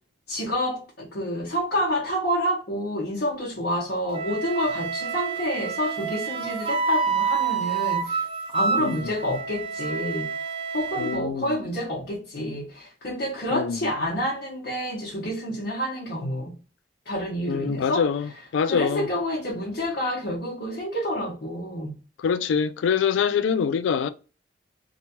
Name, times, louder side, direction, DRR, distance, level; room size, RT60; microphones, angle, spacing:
voice 1, 0.3-10.3 10.7-16.6 17.1-18.1 18.6-21.9, equal, 55° left, 0.8 m, -28 dB
Wind instrument woodwind instrument, 4.1-11.2, right 5 dB, 30° right, 0.4 m, -28 dB
voice 2, 8.8-9.1 11.0-11.6 13.5-13.9 17.5-19.1 22.2-24.1, left 6 dB, 85° left, 0.3 m, -25 dB
2.9 x 2.2 x 2.8 m
head